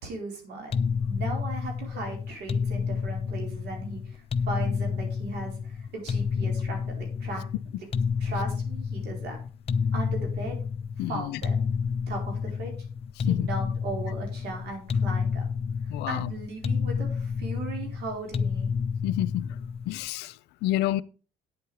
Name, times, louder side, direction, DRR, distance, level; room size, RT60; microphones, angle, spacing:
voice 1, 0.0-7.5 8.2-9.4 9.9-10.6 11.1-11.6 12.1-12.7 13.2-15.5 16.1-18.7, right 3 dB, 75° right, 4.5 m, -37 dB
sound 1, 0.7-20.0, left 6 dB, 35° left, 0.7 m, -30 dB
voice 2, 11.0-11.4 13.3-13.5 15.9-16.3 19.0-19.6 19.9-21.0, left 15 dB, 85° left, 0.6 m, -29 dB
9.6 x 7.7 x 5.0 m
cardioid pair, 110°, 17 cm